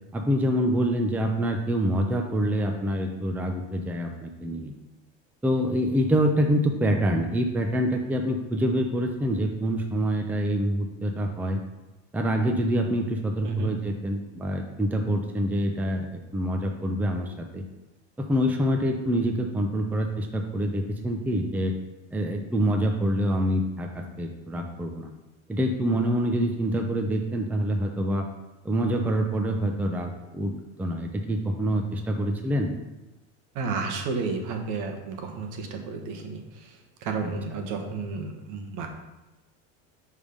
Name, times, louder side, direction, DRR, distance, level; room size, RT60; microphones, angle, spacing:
voice 1, 0.1-4.7 5.4-11.6 12.1-17.6 18.2-21.7 22.1-25.1 25.5-28.2 28.6-30.5 30.8-32.7, equal, 5° right, 3 dB, 0.5 m, -26 dB
voice 2, 33.5-38.9, right 4 dB, 60° right, 4 dB, 1.3 m, -32 dB
6.4 x 3.6 x 5.3 m, 1.0 s
supercardioid pair, 115°, 35 cm